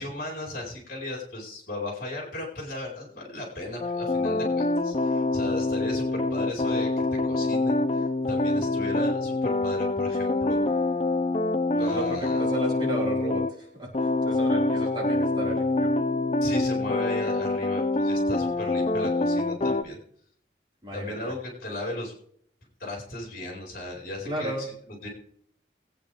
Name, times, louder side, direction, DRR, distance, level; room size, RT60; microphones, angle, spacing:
voice 1, 0.0-10.6 11.8-12.4 16.4-20.0 20.9-22.1 22.8-25.1, left 1 dB, 50° left, -2 dB, 4.5 m, -36 dB
sound 1, 3.8-13.5 13.9-19.8, left 2 dB, 35° left, 0.6 m, -25 dB
voice 2, 11.7-15.9 20.8-21.3 24.2-24.7, right 1 dB, 25° right, -4 dB, 4.6 m, -33 dB
22.0 x 9.0 x 3.5 m, 0.63 s
head